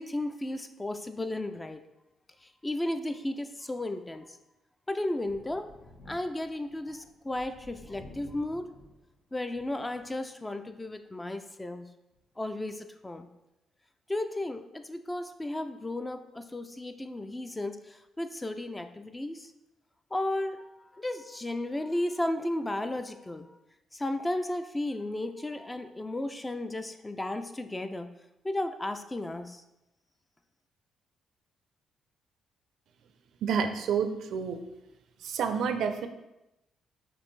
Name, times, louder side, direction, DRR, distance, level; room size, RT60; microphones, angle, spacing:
voice 1, 0.0-1.8 2.6-4.3 4.9-5.7 6.1-8.7 9.3-11.9 12.4-13.3 14.1-19.5 20.1-23.5 23.9-28.1 28.4-29.6, left 1 dB, 15° left, 8 dB, 0.3 m, -34 dB
Thunder, 5.2-10.2 10.7-10.8 12.1-12.2, left 1 dB, 85° left, 1.3 m, -53 dB
voice 2, 33.4-34.6 35.2-36.1, right 6 dB, 75° right, 8 dB, 0.4 m, -29 dB
5.2 x 2.5 x 3.2 m, 0.91 s
cardioid pair, 90°, 0 cm